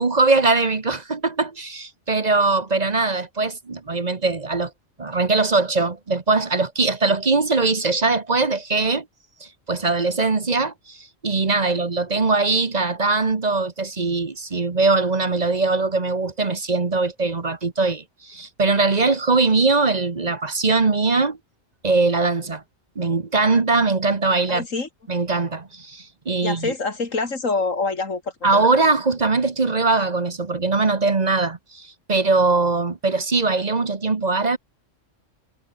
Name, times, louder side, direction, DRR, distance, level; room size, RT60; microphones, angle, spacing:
voice 1, 0.0-4.7 5.0-9.0 9.7-21.4 21.8-22.6 23.0-24.6 25.1-26.7 28.4-34.6, right 3 dB, 35° right, 1.2 m, -21 dB
voice 2, 24.5-24.9 26.4-28.5, left 3 dB, 80° left, 3.4 m, -26 dB
omnidirectional pair, 1.3 m